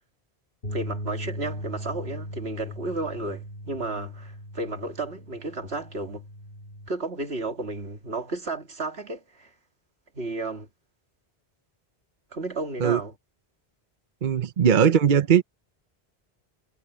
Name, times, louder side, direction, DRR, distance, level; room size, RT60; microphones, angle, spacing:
sound 1, 0.6-6.9, equal, 65° left, 4.6 m, -38 dB
voice 1, 0.6-6.2 6.9-9.5 10.1-10.7 12.3-13.1, right 2 dB, 90° right, 2.6 m, -33 dB
voice 2, 14.2-15.4, right 8 dB, 50° right, 0.9 m, -19 dB
omnidirectional pair, 1.0 m